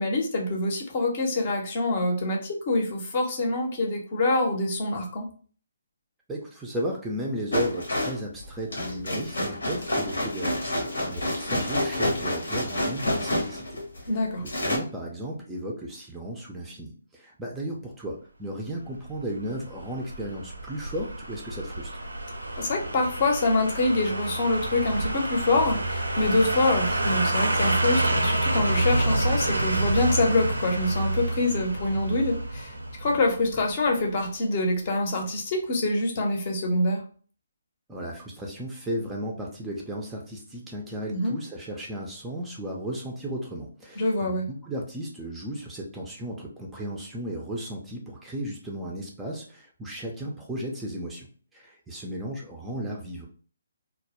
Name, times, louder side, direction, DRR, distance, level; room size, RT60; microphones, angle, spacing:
voice 1, 0.0-5.3 14.1-14.4 22.6-32.7 33.0-37.0 41.1-41.3 44.0-44.5, left 2 dB, 40° left, 2 dB, 0.6 m, -25 dB
voice 2, 6.3-21.9 37.9-53.3, equal, 10° right, -2 dB, 0.4 m, -35 dB
sound 1, 7.5-14.1 14.5-14.8, left 1 dB, 75° left, 0.8 m, -28 dB
sound 2, 19.1-34.0 34.3-34.4, right 1 dB, 90° right, 0.5 m, -28 dB
2.2 x 2.0 x 2.8 m, 0.42 s
figure-of-eight pair, 140°, 0 cm